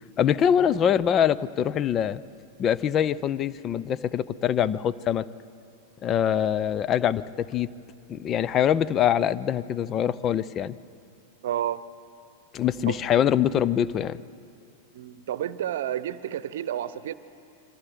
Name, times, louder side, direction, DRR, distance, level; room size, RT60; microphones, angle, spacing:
voice 1, 0.2-2.2 2.6-5.2 6.0-7.7 8.1-10.7 12.5-14.2, left 9 dB, 30° left, 17 dB, 0.6 m, -24 dB
voice 2, 11.4-11.8 12.9-13.0 14.9-17.1, right 11 dB, 60° right, 16 dB, 0.9 m, -30 dB
26.5 x 24.5 x 5.1 m, 2.5 s
figure-of-eight pair, 95°, 0 cm